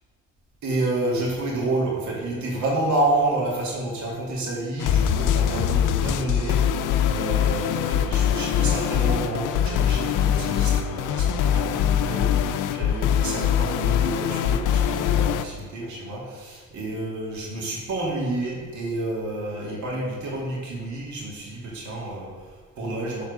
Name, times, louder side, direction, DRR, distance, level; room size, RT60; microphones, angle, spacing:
voice 1, 0.6-23.2, right 2 dB, 70° right, -3 dB, 2.7 m, -29 dB
sound 1, 4.8-15.4, left 9 dB, 85° left, 0.5 m, -23 dB
7.3 x 4.5 x 6.6 m, 1.5 s
cardioid pair, 90°, 30 cm